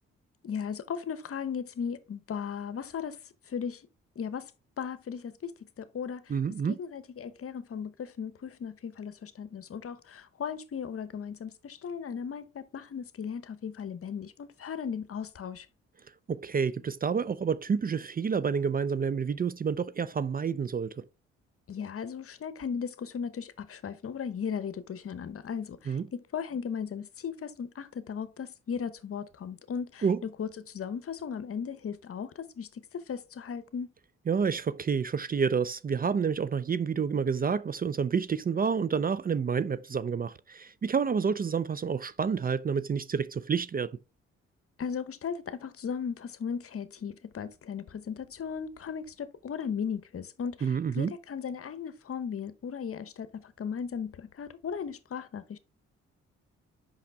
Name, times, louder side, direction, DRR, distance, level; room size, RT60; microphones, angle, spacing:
voice 1, 0.4-3.2 3.5-3.8 4.2-4.5 4.8-6.3 6.7-15.7 21.7-30.0 30.4-33.9 44.8-55.6, left 7 dB, 50° left, 0.9 m, -37 dB
voice 2, 6.3-6.8 16.3-21.0 25.9-26.1 30.0-30.2 34.3-43.9 50.6-51.1, right 6 dB, 30° right, 0.5 m, -29 dB
5.7 x 5.6 x 3.4 m
supercardioid pair, 55°, 29 cm